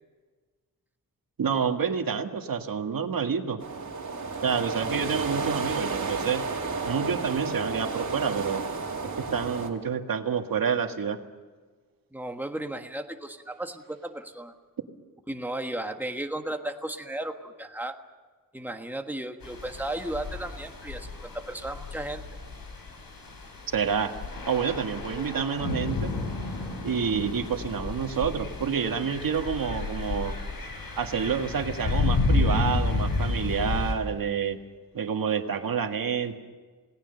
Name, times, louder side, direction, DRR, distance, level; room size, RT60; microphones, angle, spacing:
voice 1, 1.4-3.6 4.4-6.4 6.9-8.6 9.2-11.2 23.7-24.1 24.5-26.1 26.8-30.4 31.0-34.6 34.9-36.4, right 6 dB, 80° right, 5 dB, 1.8 m, -28 dB
sound 1, 3.6-9.7, right 4 dB, 60° right, 2.7 m, -32 dB
voice 2, 12.1-14.5 15.3-17.9 18.5-22.2, right 1 dB, 5° right, 4 dB, 1.4 m, -35 dB
sound 2, 19.4-33.9, left 3 dB, 90° left, 5.0 m, -31 dB
28.0 x 18.5 x 6.8 m, 1.4 s
wide cardioid pair, 175°, 34 cm